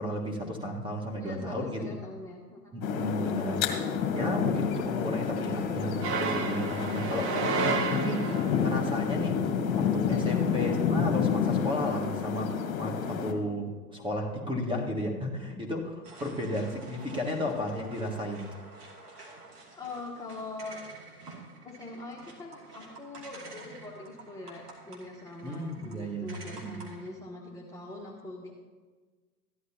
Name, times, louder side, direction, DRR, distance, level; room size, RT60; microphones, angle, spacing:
voice 1, 0.0-1.9 2.7-3.6 4.0-18.5 25.4-26.8, equal, 10° right, 1 dB, 1.6 m, -34 dB
voice 2, 1.2-2.7 8.9-9.0 10.1-10.5 19.8-20.8 21.6-28.5, left 2 dB, 5° left, -4 dB, 1.3 m, -43 dB
sound 1, 2.8-13.3, left 6 dB, 35° left, 1.5 m, -29 dB
sound 2, 6.0-8.6, right 6 dB, 25° right, 0.9 m, -31 dB
sound 3, 16.0-27.1, right 2 dB, 75° right, 2.7 m, -49 dB
14.5 x 11.5 x 2.8 m, 1.4 s
figure-of-eight pair, 95°, 47 cm